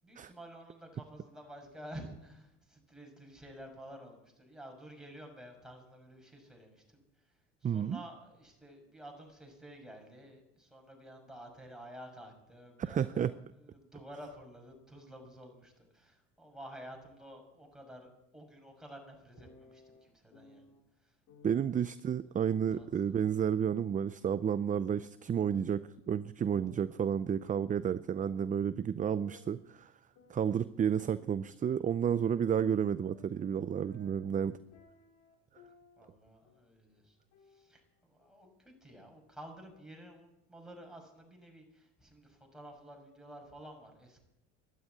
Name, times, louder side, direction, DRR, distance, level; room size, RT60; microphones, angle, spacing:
voice 1, 0.0-20.7 21.0-21.2 22.8-23.2 36.0-37.2 37.4-44.2, right 1 dB, ahead, 2 dB, 6.3 m, -51 dB
voice 2, 7.6-8.0 12.8-13.3 21.4-29.9 30.3-34.6, right 8 dB, 25° right, 15 dB, 0.5 m, -31 dB
sound 1, 19.3-20.8 21.3-21.8 22.6-24.3 24.7-26.3 26.6-28.8 29.2-31.7 32.0-36.1 36.4-36.8 37.3-38.3, left 3 dB, 60° left, 5.1 m, -61 dB
12.5 x 12.0 x 9.5 m, 0.85 s
hypercardioid pair, 90°, 35 cm